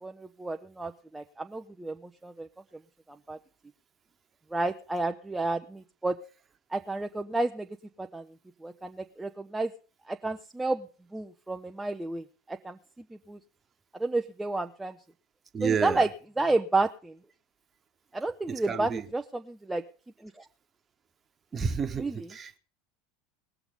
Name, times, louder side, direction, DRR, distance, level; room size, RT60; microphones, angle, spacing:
voice 1, 0.0-2.5 3.3-3.4 4.5-6.2 6.7-7.7 8.0-8.2 8.6-9.7 10.1-10.9 11.1-12.8 13.3-13.4 14.0-14.9 15.6-16.1 16.4-17.1 18.1-19.8 20.2-20.5 22.0-22.2, right 2 dB, 10° right, 0.6 m, -31 dB
voice 2, 15.5-16.1 18.5-19.1 21.5-22.6, right 6 dB, 25° right, 1.2 m, -30 dB
19.5 x 7.0 x 5.2 m
figure-of-eight pair, 75°, 0 cm